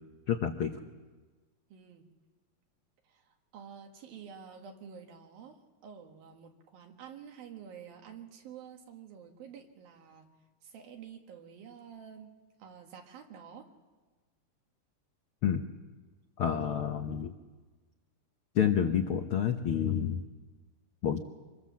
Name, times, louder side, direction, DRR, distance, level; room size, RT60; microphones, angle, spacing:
voice 1, 0.3-0.8 15.4-15.6 16.4-17.3 18.5-20.2 21.0-21.2, left 8 dB, 80° left, 5 dB, 1.2 m, -29 dB
voice 2, 1.7-2.1 3.1-10.3 10.6-12.3 12.6-13.7, right 7 dB, 85° right, 3 dB, 3.7 m, -49 dB
26.0 x 21.5 x 7.5 m, 1.3 s
omnidirectional pair, 4.0 m